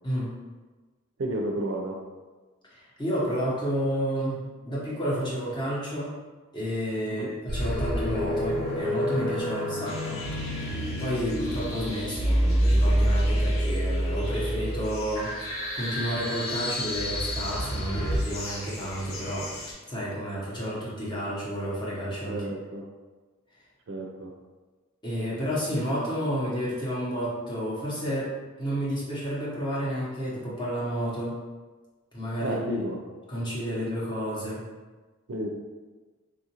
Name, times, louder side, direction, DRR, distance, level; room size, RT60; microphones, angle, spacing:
voice 1, 1.2-2.0 7.1-7.3 22.3-22.9 23.9-24.3 32.4-33.0 35.3-35.6, right 1 dB, 60° right, 1 dB, 0.4 m, -31 dB
voice 2, 2.7-6.1 6.5-10.6 11.0-19.6 19.9-22.4 25.0-31.4 32.1-32.8 33.3-34.7, equal, 20° left, -7 dB, 0.8 m, -31 dB
sound 1, 7.5-18.2, equal, 45° left, 1.0 m, -27 dB
sound 2, 9.8-19.7, left 2 dB, 75° left, 0.7 m, -41 dB
3.7 x 2.4 x 2.8 m, 1.3 s
head